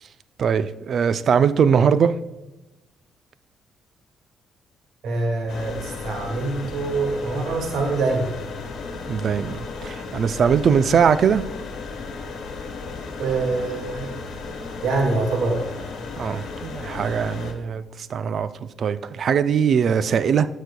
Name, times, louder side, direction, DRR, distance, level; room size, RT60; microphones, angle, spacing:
voice 1, 0.4-2.2 9.1-11.4 16.2-17.8 18.1-20.5, right 7 dB, 55° right, 0.4 m, -21 dB
voice 2, 5.0-8.4 13.2-14.1 14.8-15.7, right 3 dB, 75° right, 1.9 m, -24 dB
sound 1, 5.5-17.5, left 4 dB, 70° left, 1.4 m, -34 dB
12.5 x 6.3 x 2.3 m
cardioid pair, 90°, 0 cm